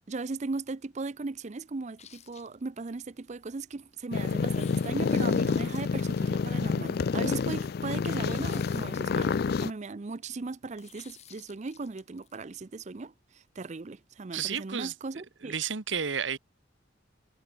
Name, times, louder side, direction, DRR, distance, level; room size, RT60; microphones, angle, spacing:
voice 1, 0.1-15.6, right 3 dB, 35° right, 0.5 m, -38 dB
sound 1, 2.0-3.0 4.4-6.7 8.3-9.7 10.8-12.4, left 9 dB, 35° left, 2.1 m, -54 dB
sound 2, 4.1-9.7, left 5 dB, 55° left, 0.4 m, -28 dB
voice 2, 14.3-14.9 15.4-16.4, right 7 dB, 75° right, 1.3 m, -31 dB
head